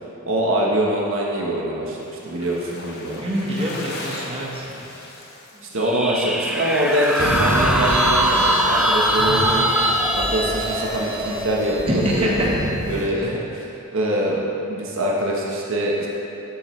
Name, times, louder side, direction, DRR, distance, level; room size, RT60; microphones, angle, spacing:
voice 1, 0.3-2.0 2.2-3.2 5.7-9.7 10.1-12.4 12.9-16.1, right 1 dB, 60° right, -3 dB, 1.2 m, -24 dB
sound 1, 2.0-11.5, left 2 dB, 45° left, 1.0 m, -39 dB
voice 2, 3.2-4.7 5.5-5.6 11.9-12.3 13.2-13.3, equal, 25° right, -5 dB, 1.3 m, -25 dB
sound 2, 5.8-13.0, equal, 5° right, 0.4 m, -23 dB
sound 3, 7.2-13.0, right 1 dB, 40° right, 1.5 m, -26 dB
11.0 x 8.7 x 3.2 m, 2.9 s
head